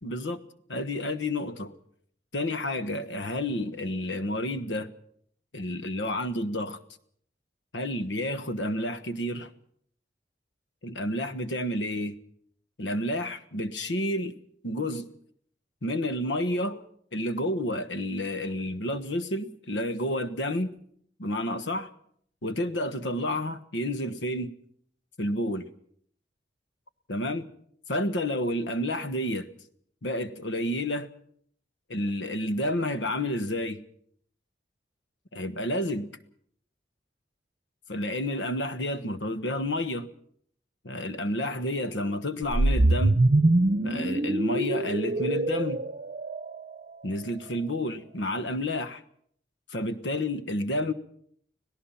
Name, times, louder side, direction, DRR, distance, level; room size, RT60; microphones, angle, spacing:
voice 1, 0.0-0.4 0.7-1.7 2.3-4.9 5.5-6.8 7.7-9.5 10.8-12.1 12.8-14.3 14.6-15.1 15.8-16.8 17.1-20.7 21.2-21.9 22.4-24.5 25.2-25.7 27.1-27.5 27.9-29.5 30.0-31.1 31.9-33.8 35.3-36.1 37.9-40.1 40.8-43.2 43.8-45.8 47.0-49.0 49.7-50.9, left 1 dB, 85° left, 1.3 m, -30 dB
sound 1, 42.4-46.7, right 2 dB, 40° right, 0.8 m, -24 dB
25.5 x 17.5 x 5.7 m
head